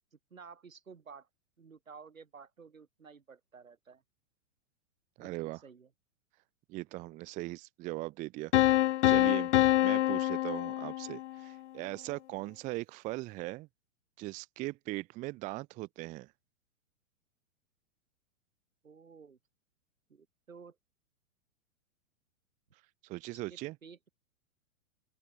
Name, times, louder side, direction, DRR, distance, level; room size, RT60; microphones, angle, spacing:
voice 1, 0.1-1.3 1.6-4.0 5.2-5.9 18.8-19.4 20.1-20.8 23.3-24.1, right 5 dB, 85° right, 5.9 m, -53 dB
voice 2, 5.2-5.6 6.7-9.5 9.8-13.7 14.2-16.3 23.0-23.8, right 20 dB, 20° right, 0.5 m, -40 dB
sound 1, 8.5-11.4, left 14 dB, 60° left, 1.0 m, -26 dB
open air
hypercardioid pair, 115°, 39 cm